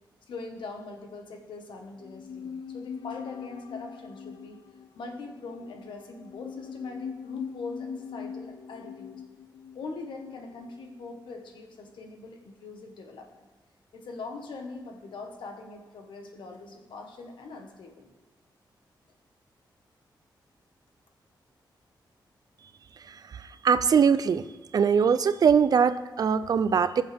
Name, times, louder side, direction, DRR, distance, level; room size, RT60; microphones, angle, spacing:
voice 1, 0.3-4.6 4.9-9.2 9.7-13.5 13.9-18.1, left 3 dB, 90° left, 3 dB, 1.5 m, -42 dB
sound 1, 2.0-11.3 11.6-11.7, left 6 dB, 75° left, 0.4 m, -42 dB
voice 2, 23.0-24.4 24.7-27.0, right 6 dB, 55° right, 14 dB, 0.5 m, -22 dB
20.0 x 7.3 x 3.6 m, 1.2 s
wide cardioid pair, 145°, 8 cm